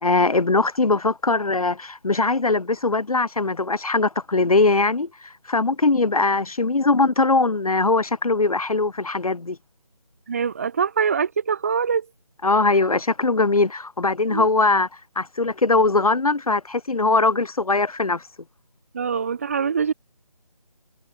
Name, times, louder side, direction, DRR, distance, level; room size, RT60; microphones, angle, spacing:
voice 1, 0.0-9.6 12.4-14.9 15.2-18.2, left 3 dB, 65° left, 1.1 m, -21 dB
voice 2, 10.3-12.1 14.3-14.5 18.9-19.9, right 6 dB, 20° right, 1.2 m, -23 dB
figure-of-eight pair, 160°, 20 cm